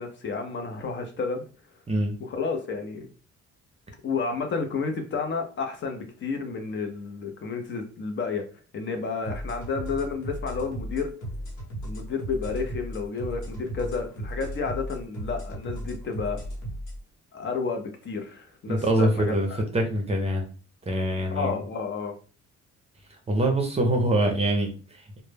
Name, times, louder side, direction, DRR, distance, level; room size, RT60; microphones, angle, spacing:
voice 1, 0.0-1.4 2.2-3.1 4.0-8.4 8.7-11.1 11.8-16.4 17.3-19.6 21.3-22.1, left 4 dB, 40° left, 4 dB, 0.5 m, -31 dB
sound 1, 9.2-17.0, equal, 85° left, 1.0 m, -36 dB
voice 2, 18.7-19.5 19.7-20.4 20.9-21.5 23.3-25.2, right 1 dB, 20° right, 2 dB, 0.5 m, -24 dB
2.0 x 2.0 x 3.2 m, 0.37 s
cardioid pair, 130°, 29 cm